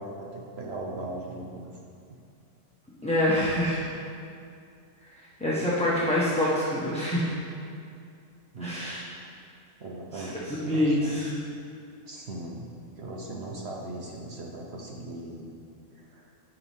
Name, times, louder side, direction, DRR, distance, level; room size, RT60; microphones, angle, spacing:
voice 1, 0.0-1.8 8.5-8.8 9.8-11.2 12.1-15.5 15.9-16.3, right 2 dB, 55° right, -1 dB, 1.0 m, -39 dB
voice 2, 3.0-3.8 5.2-7.3 8.6-9.0 10.1-10.2 10.6-11.3, left 1 dB, 5° left, -9 dB, 1.0 m, -26 dB
9.4 x 7.0 x 3.6 m, 2.4 s
omnidirectional pair, 1.4 m